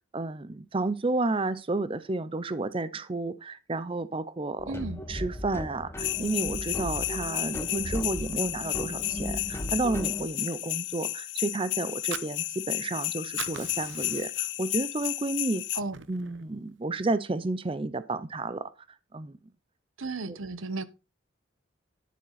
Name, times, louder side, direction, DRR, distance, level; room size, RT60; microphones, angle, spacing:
voice 1, 0.1-4.8 5.1-15.6 16.1-18.7 19.1-19.4 20.3-20.4, right 2 dB, 25° right, 0.5 m, -31 dB
sound 1, 4.6-10.3, equal, 10° left, 1.3 m, -37 dB
voice 2, 4.7-5.0 15.8-15.9 20.0-20.8, right 3 dB, 85° right, 1.0 m, -34 dB
sound 2, 6.0-15.8, left 17 dB, 60° left, 0.4 m, -32 dB
Fire, 11.8-13.0 13.2-14.6 15.0-15.2 15.6-16.5, right 8 dB, 65° right, 0.8 m, -41 dB
10.0 x 8.4 x 4.0 m
head